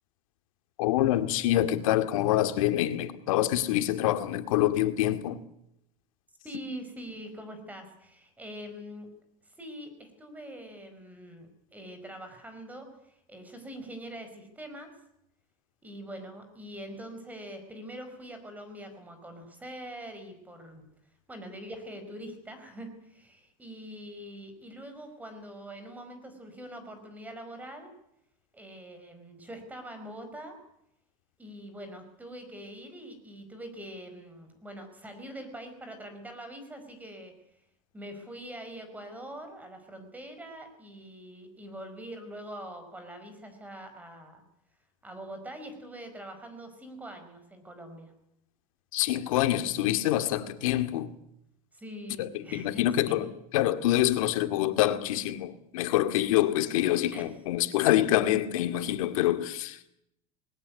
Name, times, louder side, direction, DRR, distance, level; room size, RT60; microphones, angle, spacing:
voice 1, 0.8-5.4 48.9-51.1 52.2-53.3 53.5-59.9, left 13 dB, 80° left, 2.2 m, -26 dB
voice 2, 6.4-9.1 9.5-14.9 15.8-20.8 21.3-27.9 28.5-30.6 31.4-37.3 37.9-44.4 45.0-48.1 51.7-53.2 57.1-57.3 58.7-58.9, right 1 dB, 10° right, 5.2 m, -44 dB
21.0 x 18.5 x 9.5 m
supercardioid pair, 145°, 17 cm